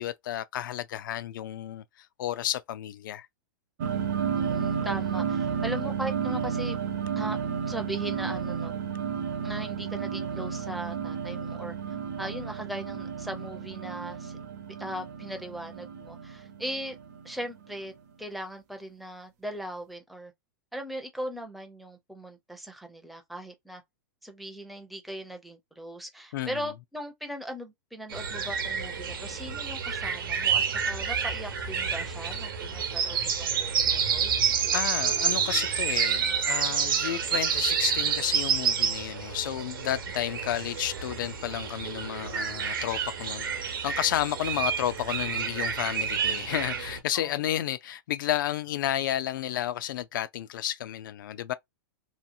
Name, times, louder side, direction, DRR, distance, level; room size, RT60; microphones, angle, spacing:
voice 1, 0.0-3.3 26.3-26.7 34.7-51.5, left 12 dB, 70° left, 0.4 m, -32 dB
sound 1, 3.8-17.8, right 7 dB, 55° right, 0.6 m, -32 dB
voice 2, 4.3-6.8 7.2-7.4 7.7-8.7 9.4-11.7 12.2-14.4 14.8-17.0 17.2-17.9 18.2-20.3 20.7-23.8 24.2-34.3 47.1-47.4, equal, ahead, 0.5 m, -39 dB
sound 2, 28.1-47.0, right 7 dB, 85° right, 0.9 m, -29 dB
2.8 x 2.3 x 2.5 m
supercardioid pair, 150°, 11 cm